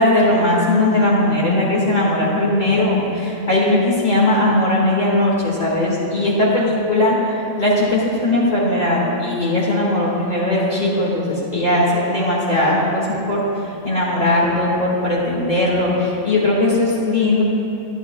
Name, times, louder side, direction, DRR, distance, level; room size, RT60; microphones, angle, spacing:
voice 1, 0.0-13.4 13.8-17.4, left 1 dB, 30° left, -6 dB, 1.9 m, -18 dB
11.0 x 10.5 x 2.3 m, 3.0 s
omnidirectional pair, 1.5 m